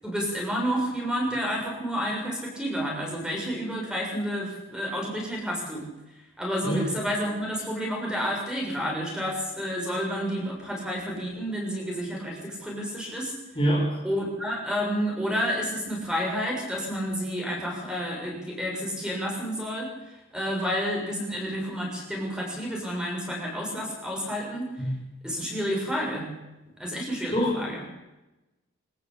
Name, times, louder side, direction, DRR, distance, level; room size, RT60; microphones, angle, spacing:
voice 1, 0.0-5.9 6.4-13.3 14.0-19.9 20.3-24.7 25.2-26.3 26.8-27.8, equal, 5° right, -1 dB, 7.1 m, -30 dB
voice 2, 13.5-14.0 24.8-25.0 27.3-27.6, equal, 25° left, -2 dB, 4.9 m, -25 dB
25.5 x 15.5 x 8.7 m, 1.0 s
head